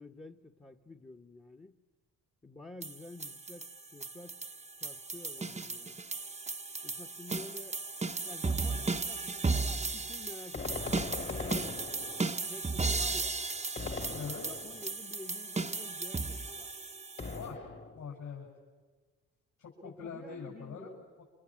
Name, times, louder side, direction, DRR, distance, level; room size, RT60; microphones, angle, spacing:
voice 1, 0.0-1.8 2.4-4.4 4.8-6.0 6.8-7.8 8.2-11.8 12.4-13.4 14.4-16.7 19.8-21.1, left 2 dB, 15° left, 6 dB, 1.2 m, -50 dB
sound 1, 2.8-17.4, right 3 dB, 20° right, 0.9 m, -35 dB
sound 2, 10.5-12.5 13.7-15.0 17.2-18.2, left 4 dB, 35° left, 2.0 m, -40 dB
voice 2, 14.1-14.4 17.2-18.5 19.6-20.9 21.2-21.3, left 5 dB, 65° left, -3 dB, 7.2 m, -43 dB
30.0 x 26.0 x 7.5 m, 1.4 s
supercardioid pair, 60°, 34 cm